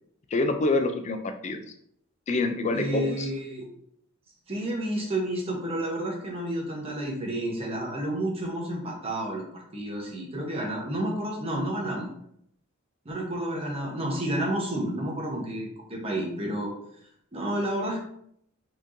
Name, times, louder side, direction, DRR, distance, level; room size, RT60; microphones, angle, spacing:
voice 1, 0.3-1.6 2.3-3.3, left 2 dB, 35° left, 7 dB, 0.4 m, -26 dB
voice 2, 2.7-3.7 4.5-12.1 13.0-16.7 17.3-18.0, right 1 dB, 30° right, -1 dB, 0.9 m, -30 dB
4.2 x 3.0 x 2.6 m, 0.69 s
head